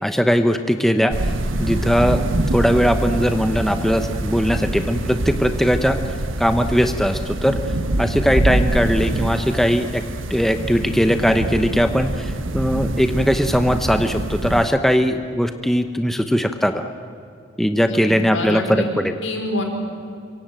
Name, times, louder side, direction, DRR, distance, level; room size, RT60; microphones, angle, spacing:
voice 1, 0.0-1.3 1.6-2.2 2.5-7.6 8.0-10.0 10.3-16.9 17.6-19.1, equal, ahead, 7 dB, 0.9 m, -19 dB
sound 1, 1.1-14.7, right 1 dB, 80° right, 1.4 m, -25 dB
Thunder / Rain, 1.4-13.1, equal, 55° right, 6.4 m, -40 dB
voice 2, 18.3-18.9 19.2-19.6, left 1 dB, 80° left, 3 dB, 5.2 m, -26 dB
26.0 x 24.0 x 9.1 m, 2.5 s
head